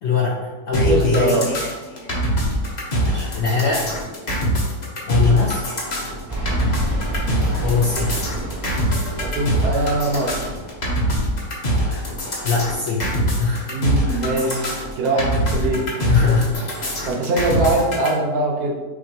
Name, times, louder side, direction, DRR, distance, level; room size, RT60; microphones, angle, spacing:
voice 1, 0.0-1.4 3.0-4.0 5.1-5.8 7.6-8.2 12.4-13.1 13.4-13.8 15.6-16.7, left 4 dB, 60° left, -3 dB, 0.7 m, -21 dB
sound 1, 0.7-18.1, equal, 35° left, 0.8 m, -23 dB
voice 2, 0.8-1.5 9.2-10.4 13.7-15.9 17.0-18.7, right 2 dB, 70° right, -1 dB, 1.3 m, -22 dB
sound 2, 6.3-11.1, right 2 dB, 25° right, 0.9 m, -29 dB
6.2 x 2.7 x 2.9 m, 1.2 s
omnidirectional pair, 1.7 m